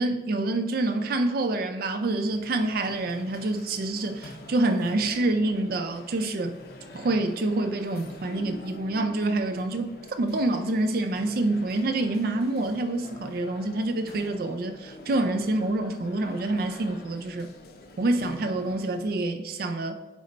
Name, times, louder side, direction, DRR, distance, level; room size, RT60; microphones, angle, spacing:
voice 1, 0.0-6.6 6.9-17.5 18.0-19.9, right 2 dB, 55° right, 0.4 m, -27 dB
sound 1, 2.0-19.3, left 2 dB, 55° left, 0.7 m, -47 dB
9.1 x 3.2 x 4.0 m
head